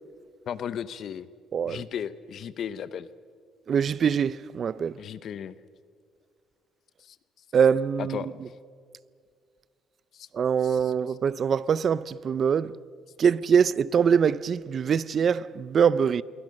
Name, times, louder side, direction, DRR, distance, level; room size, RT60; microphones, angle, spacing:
voice 1, 0.5-1.3 1.6-3.1 5.0-5.5 7.0-7.2 8.0-8.4 10.1-10.3 10.6-10.9, left 8 dB, 50° left, 0.7 m, -35 dB
voice 2, 1.5-1.8 3.7-5.0 7.5-8.2 10.3-12.8 13.2-16.2, right 7 dB, 40° right, 0.5 m, -23 dB
28.0 x 23.0 x 6.5 m
cardioid pair, 145°, 0 cm